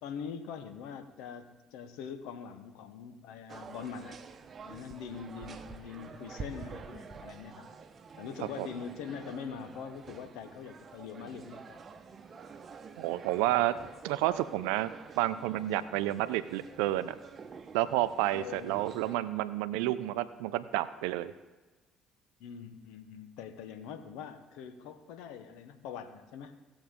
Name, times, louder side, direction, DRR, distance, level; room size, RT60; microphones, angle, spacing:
voice 1, 0.0-4.2 4.6-7.7 8.2-11.8 13.4-13.7 18.3-18.9 22.4-26.6, left 7 dB, 80° left, 9 dB, 0.9 m, -43 dB
sound 1, 3.5-19.2, right 5 dB, 45° right, 0.9 m, -48 dB
voice 2, 13.0-13.7 14.0-14.9 15.2-17.1 17.7-21.3, right 15 dB, 80° right, 14 dB, 0.4 m, -30 dB
18.0 x 7.1 x 3.6 m, 1.2 s
hypercardioid pair, 60°, 0 cm